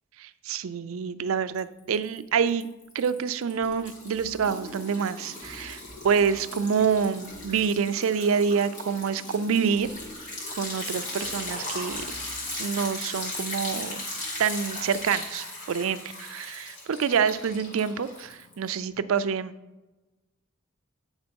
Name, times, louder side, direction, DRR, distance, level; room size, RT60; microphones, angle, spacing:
voice 1, 0.2-2.7 2.9-9.9 10.6-12.0 12.6-14.0 14.4-19.5, right 6 dB, 70° right, 13 dB, 0.4 m, -27 dB
Liquid, 1.6-2.2 2.5-18.7, left 1 dB, 40° left, 2.1 m, -37 dB
8.1 x 3.7 x 5.2 m, 1.0 s
head